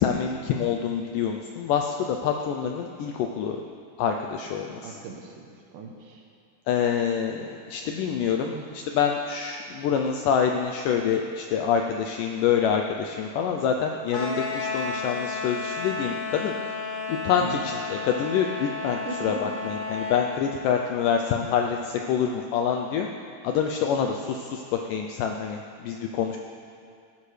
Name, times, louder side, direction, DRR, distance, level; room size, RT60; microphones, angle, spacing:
voice 1, 0.0-3.6 4.0-5.0 6.7-16.8 17.1-23.1 23.4-24.6 24.9-26.4, left 7 dB, 90° left, 3 dB, 1.8 m, -26 dB
voice 2, 4.8-6.3 8.5-8.8 17.4-17.7 19.0-19.5, right 4 dB, 70° right, 1 dB, 2.2 m, -38 dB
sound 1, 14.1-20.3, left 4 dB, 60° left, 0.8 m, -32 dB
19.0 x 12.0 x 3.3 m, 2.3 s
omnidirectional pair, 4.4 m